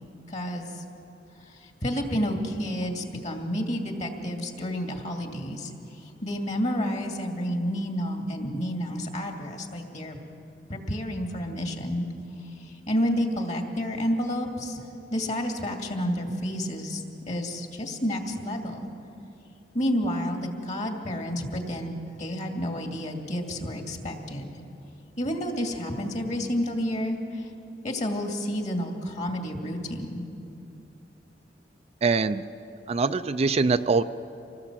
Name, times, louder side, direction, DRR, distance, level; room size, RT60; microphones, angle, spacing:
voice 1, 0.3-0.8 1.4-10.2 10.7-12.1 12.4-18.9 19.7-24.5 25.2-27.5 27.8-30.3, equal, 45° left, 3 dB, 2.5 m, -30 dB
voice 2, 32.0-32.4 32.9-34.0, right 4 dB, 35° right, 11 dB, 0.5 m, -23 dB
26.0 x 19.0 x 7.5 m, 2.8 s
head